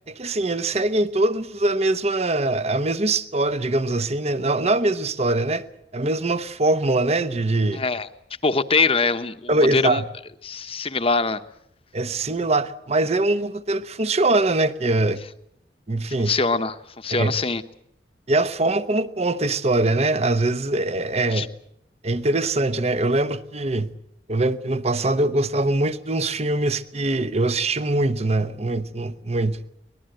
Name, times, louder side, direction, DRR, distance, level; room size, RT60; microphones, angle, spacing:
voice 1, 0.1-5.6 5.9-7.8 9.5-10.0 11.9-15.2 15.9-16.3 17.1-17.3 18.3-21.5 22.0-23.9 24.3-29.6, right 2 dB, 35° right, 1.0 m, -22 dB
voice 2, 7.7-8.1 8.4-10.0 10.4-11.4 16.2-17.6 21.3-21.5, left 4 dB, 35° left, 1.1 m, -23 dB
24.0 x 20.0 x 7.8 m
head